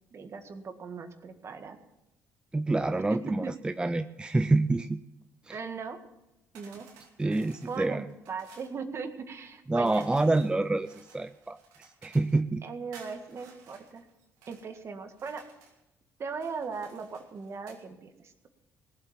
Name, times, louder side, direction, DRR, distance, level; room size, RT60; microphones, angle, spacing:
voice 1, 0.1-1.8 3.1-3.5 5.5-6.0 6.5-6.9 7.2-10.5 12.6-14.1 14.5-15.4 16.2-18.3, right 5 dB, 50° right, 7 dB, 1.9 m, -39 dB
voice 2, 2.5-5.0 5.4-5.6 7.2-8.0 9.7-12.6, right 2 dB, 15° right, 11 dB, 0.5 m, -27 dB
sound 1, 6.5-8.8 9.8-12.4 12.9-14.7 15.1-15.8 16.3-17.8, right 5 dB, 90° right, 2.5 m, -56 dB
18.0 x 8.1 x 7.6 m, 0.93 s
supercardioid pair, 70°, 6 cm